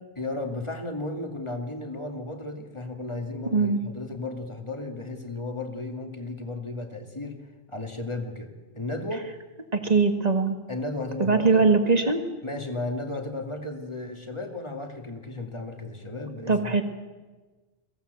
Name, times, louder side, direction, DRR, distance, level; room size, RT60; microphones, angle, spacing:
voice 1, 0.2-7.4 7.7-9.3 10.7-11.6 12.4-16.7, left 2 dB, 25° left, 4 dB, 2.3 m, -34 dB
voice 2, 9.7-10.6 11.2-12.2 16.5-16.8, right 4 dB, 40° right, 6 dB, 1.9 m, -21 dB
22.0 x 16.0 x 8.1 m, 1.3 s
omnidirectional pair, 1.1 m